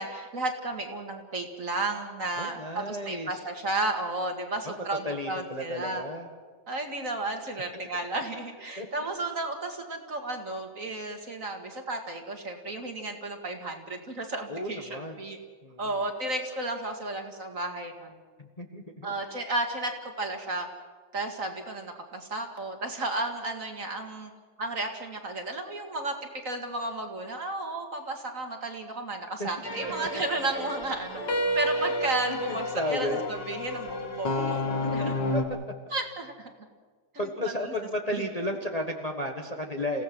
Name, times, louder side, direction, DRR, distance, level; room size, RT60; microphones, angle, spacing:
voice 1, 0.0-6.0 6.7-15.4 15.8-18.2 19.0-20.7 21.1-24.3 24.6-31.2 31.5-35.2 35.9-36.5 37.4-37.7 38.1-38.3, right 2 dB, 40° right, 4 dB, 2.3 m, -33 dB
voice 2, 2.4-3.4 5.0-6.3 8.8-8.9 14.5-15.2 15.6-15.8 18.4-19.1 29.4-29.5 29.8-29.9 32.3-33.2 34.7-35.4 37.2-40.0, left 1 dB, 20° left, 3 dB, 1.4 m, -33 dB
sound 1, 29.6-35.4, left 1 dB, 60° left, 2.7 m, -31 dB
sound 2, 29.9-30.3 30.6-30.8 31.1-31.5 31.8-32.0 32.4-33.4 33.7-34.7, left 2 dB, 35° left, 4.1 m, -38 dB
29.0 x 16.5 x 6.1 m, 1.5 s
omnidirectional pair, 2.2 m